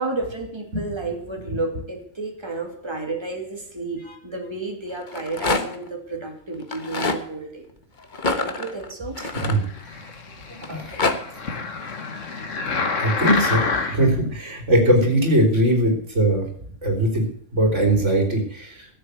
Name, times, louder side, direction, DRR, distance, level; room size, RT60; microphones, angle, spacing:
voice 1, 0.0-7.7 8.4-9.2, right 3 dB, 20° right, 2 dB, 2.8 m, -31 dB
Rattle, 5.0-5.9 6.6-7.2 8.1-10.1 10.6-11.2, left 3 dB, 40° left, 1.4 m, -26 dB
voice 2, 9.2-9.6 10.7-11.0 13.0-13.6 13.9-16.5 16.8-18.9, right 1 dB, 70° right, 3 dB, 4.0 m, -20 dB
sound 1, 9.6-14.2 14.8-14.9, left 4 dB, 75° left, 1.8 m, -28 dB
13.5 x 7.8 x 8.1 m, 0.63 s
omnidirectional pair, 1.3 m